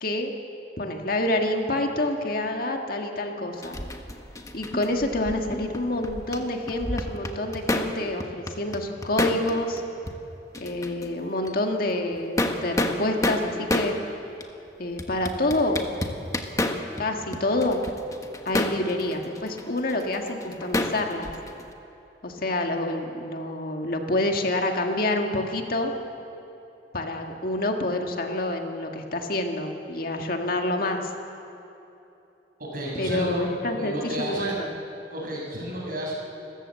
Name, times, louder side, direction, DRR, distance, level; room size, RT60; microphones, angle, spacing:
voice 1, 0.0-0.3 0.8-3.8 4.5-9.8 10.6-14.0 14.8-15.8 17.0-17.8 18.5-21.3 22.2-25.9 26.9-31.1 33.0-34.7, left 1 dB, 55° left, 3 dB, 1.8 m, -27 dB
sound 1, 3.6-6.4 6.7-7.9 8.2-9.8 10.1-10.2 10.5-11.1 11.4-11.5 12.1-13.9 14.4-14.5 15.0-17.0 17.3-21.7, left 1 dB, 20° left, 1.3 m, -29 dB
voice 2, 32.6-33.5 33.7-34.6 35.1-36.2, equal, 55° right, -3 dB, 6.7 m, -31 dB
28.5 x 15.0 x 7.6 m, 2.9 s
head